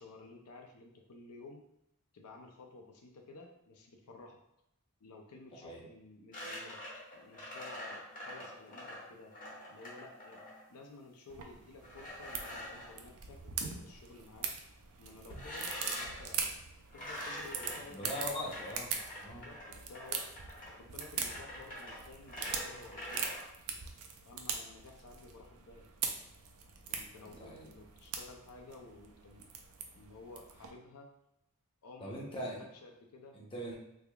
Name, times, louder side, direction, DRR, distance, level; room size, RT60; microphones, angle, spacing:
voice 1, 0.0-1.6 2.1-4.4 5.0-6.8 7.1-9.3 9.7-16.5 16.9-18.6 19.2-20.3 20.7-23.5 24.3-25.9 26.9-29.5 30.0-31.1 31.8-32.2 32.6-33.4, left 3 dB, 75° left, 2 dB, 0.5 m, -53 dB
sound 1, 6.3-10.6 11.8-12.9 15.3-16.2 16.9-23.4, left 1 dB, 40° left, 1.1 m, -45 dB
sound 2, 11.3-30.7, right 6 dB, 70° right, 0.5 m, -42 dB
voice 2, 17.6-18.9 19.2-19.5 27.3-27.7 32.0-32.6 33.3-33.7, equal, 25° left, -3 dB, 0.7 m, -41 dB
3.4 x 3.3 x 2.3 m, 0.80 s
head